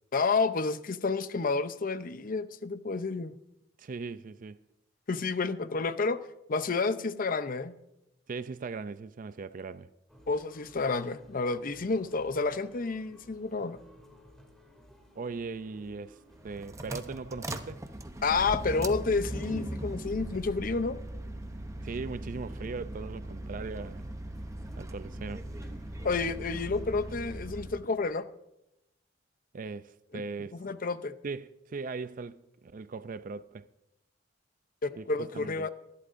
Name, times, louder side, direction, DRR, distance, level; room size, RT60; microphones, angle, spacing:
voice 1, 0.1-3.4 5.1-7.7 10.3-13.8 18.2-21.0 26.0-28.3 30.5-31.1 34.8-35.7, left 4 dB, 50° left, 0.6 m, -30 dB
voice 2, 3.8-4.6 8.3-9.9 15.2-16.2 16.4-17.8 21.8-24.0 24.8-25.5 29.5-30.5 31.2-33.7 35.0-35.7, right 4 dB, 45° right, 0.4 m, -39 dB
sound 1, 10.1-27.2, equal, 5° left, 2.6 m, -56 dB
sound 2, 16.3-27.9, right 1 dB, 15° right, 0.7 m, -39 dB
25.0 x 11.5 x 2.6 m
head